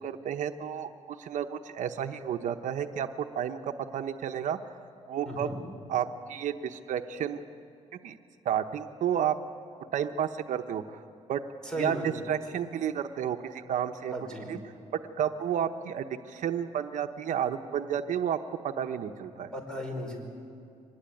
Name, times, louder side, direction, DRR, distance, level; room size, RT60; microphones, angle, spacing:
voice 1, 0.0-3.1 3.3-4.6 5.1-5.5 5.9-7.4 8.0-8.2 8.4-9.4 9.9-11.0 11.3-11.4 11.8-14.1 14.5-14.6 14.9-18.4 18.6-19.5, right 9 dB, 75° right, 6 dB, 0.9 m, -31 dB
voice 2, 5.2-5.6 11.6-12.1 14.1-14.5 19.5-20.2, equal, 5° left, 1 dB, 5.1 m, -35 dB
24.0 x 20.5 x 9.1 m, 2.5 s
cardioid pair, 145°, 13 cm